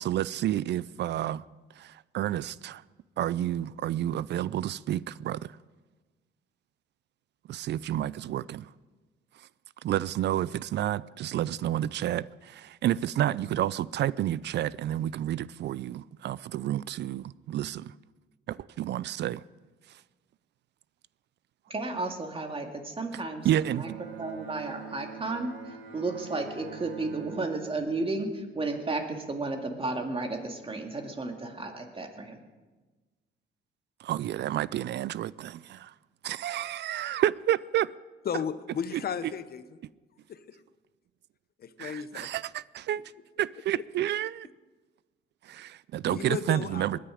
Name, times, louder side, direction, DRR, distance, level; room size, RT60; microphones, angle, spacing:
voice 1, 0.0-1.4 1.8-2.8 3.2-5.5 7.5-8.7 9.8-17.9 18.5-19.4 23.4-24.0 34.0-35.9 36.2-37.9 41.8-43.0 43.4-44.5 45.4-47.0, right 12 dB, 60° right, 0.4 m, -30 dB
voice 2, 21.7-23.9 24.2-32.4, right 3 dB, 25° right, 2.1 m, -33 dB
Bowed string instrument, 23.4-28.9, right 6 dB, 80° right, 1.9 m, -45 dB
voice 3, 38.2-39.6 40.3-40.6 41.6-42.3 46.0-47.0, left 7 dB, 50° left, 0.9 m, -34 dB
20.0 x 10.5 x 5.1 m
cardioid pair, 90°, 20 cm